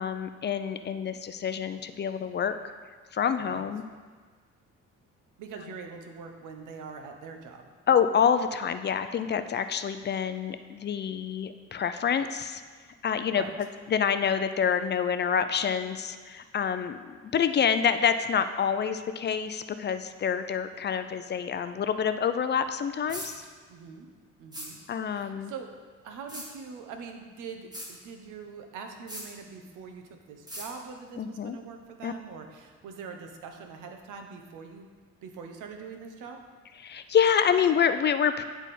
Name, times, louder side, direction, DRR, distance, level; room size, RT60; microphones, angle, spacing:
voice 1, 0.0-2.6 3.1-3.8 7.9-12.6 13.0-23.4 24.9-25.5 31.2-31.6 32.0-32.1 36.8-38.4, left 7 dB, 35° left, 10 dB, 0.4 m, -27 dB
voice 2, 3.4-3.7 5.4-7.7 13.3-13.5 23.7-24.1 24.4-24.8 25.1-25.7 26.0-34.9 35.2-36.4, right 5 dB, 85° right, 5 dB, 0.8 m, -43 dB
sound 1, 23.1-23.3 24.5-24.7 26.3-26.5 27.7-27.9 29.1-29.3 30.5-30.7, equal, 15° right, 1.5 m, -38 dB
9.9 x 3.5 x 4.2 m, 1.5 s
cardioid pair, 90°, 30 cm